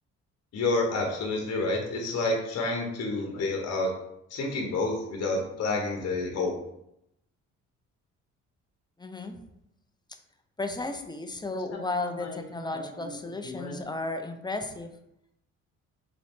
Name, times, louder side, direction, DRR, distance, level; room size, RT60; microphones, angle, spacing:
voice 1, 0.5-4.0 4.3-6.6 12.2-12.4 12.7-13.1 13.4-13.8, left 2 dB, 55° left, 1 dB, 1.0 m, -29 dB
voice 2, 9.0-9.4 10.6-15.0, left 2 dB, 15° left, 6 dB, 0.5 m, -34 dB
4.0 x 3.6 x 3.5 m, 0.80 s
cardioid pair, 90°, 30 cm